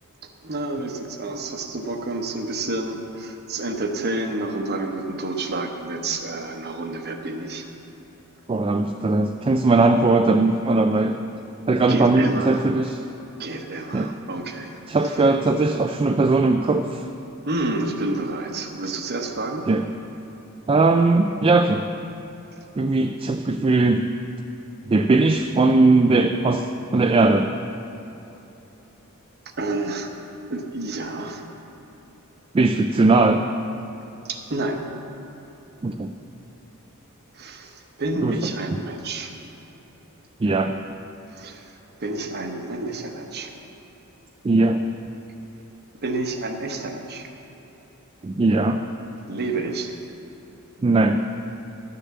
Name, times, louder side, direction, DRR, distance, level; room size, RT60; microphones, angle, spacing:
voice 1, 0.4-7.6 11.9-12.6 13.4-14.8 17.5-19.7 29.6-30.1 30.5-31.4 34.3-34.8 37.4-37.7 38.0-39.3 41.3-41.6 42.0-43.5 46.0-47.3 49.3-49.9, right 2 dB, 50° right, 4 dB, 1.0 m, -29 dB
voice 2, 8.5-11.2 11.7-13.0 13.9-14.1 14.9-17.0 19.7-19.8 20.7-21.8 22.8-24.0 24.9-26.7 26.9-27.5 32.5-33.4 35.8-36.1 38.2-38.8 40.4-40.7 44.4-44.8 48.2-48.8 50.8-51.2, right 3 dB, 25° right, 5 dB, 0.3 m, -19 dB
11.5 x 6.7 x 7.5 m, 3.0 s
head